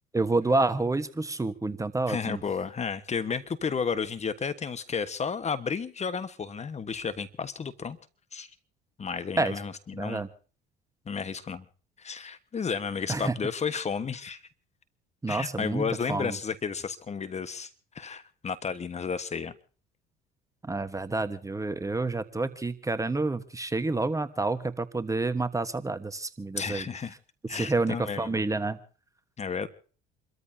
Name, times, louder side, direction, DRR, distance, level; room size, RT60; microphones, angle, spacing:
voice 1, 0.1-2.4 9.4-9.5 10.0-10.3 13.1-13.3 15.2-16.4 20.6-26.8 27.5-28.8, right 3 dB, 15° right, 11 dB, 1.3 m, -29 dB
voice 2, 2.1-8.0 8.3-8.5 9.0-10.2 11.0-11.6 12.0-14.4 15.3-17.7 17.9-19.5 26.5-27.1 27.5-28.4 29.4-29.7, left 6 dB, 35° left, 12 dB, 1.4 m, -32 dB
28.5 x 13.5 x 2.8 m, 0.40 s
supercardioid pair, 75°, 20 cm